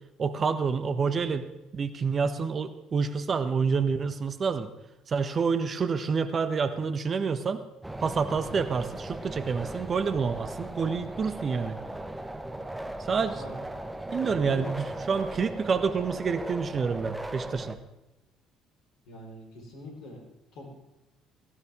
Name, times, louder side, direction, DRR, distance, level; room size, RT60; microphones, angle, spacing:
voice 1, 0.2-1.5 1.7-4.7 5.1-7.6 8.0-11.8 13.1-13.4 14.1-17.8, right 5 dB, 40° right, 11 dB, 1.1 m, -28 dB
sound 1, 7.8-17.8, right 1 dB, 10° right, 1.5 m, -38 dB
voice 2, 14.1-14.8 19.1-20.2 20.5-20.7, left 1 dB, 60° left, 0 dB, 4.8 m, -43 dB
17.0 x 16.0 x 3.7 m, 0.97 s
figure-of-eight pair, 50°, 0 cm